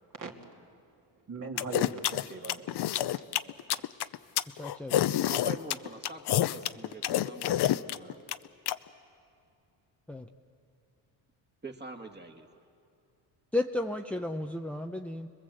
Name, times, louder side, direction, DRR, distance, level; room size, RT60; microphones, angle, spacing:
voice 1, 0.1-0.5 1.3-3.2 3.6-3.8, right 4 dB, 40° right, 1 dB, 2.9 m, -41 dB
sound 1, 1.6-8.7, left 12 dB, 55° left, 0.8 m, -28 dB
voice 2, 4.6-5.0 10.1-10.3 13.5-15.3, left 2 dB, 5° left, 4 dB, 0.8 m, -33 dB
voice 3, 5.3-8.2 11.6-12.5, right 3 dB, 20° right, 4 dB, 2.3 m, -45 dB
30.0 x 21.0 x 7.9 m, 2.5 s
cardioid pair, 90°, 46 cm